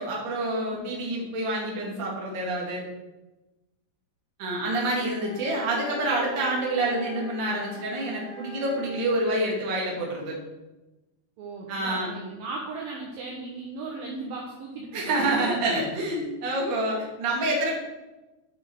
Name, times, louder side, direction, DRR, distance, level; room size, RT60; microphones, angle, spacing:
voice 1, 0.0-2.8 4.4-10.4 11.7-12.1 14.9-17.7, right 1 dB, 40° right, -2 dB, 1.8 m, -27 dB
sound 1, 4.9-9.1, left 1 dB, 60° left, 1.7 m, -42 dB
voice 2, 11.4-16.1, right 3 dB, 80° right, -2 dB, 2.1 m, -37 dB
12.5 x 6.3 x 4.6 m, 1.1 s
omnidirectional pair, 5.7 m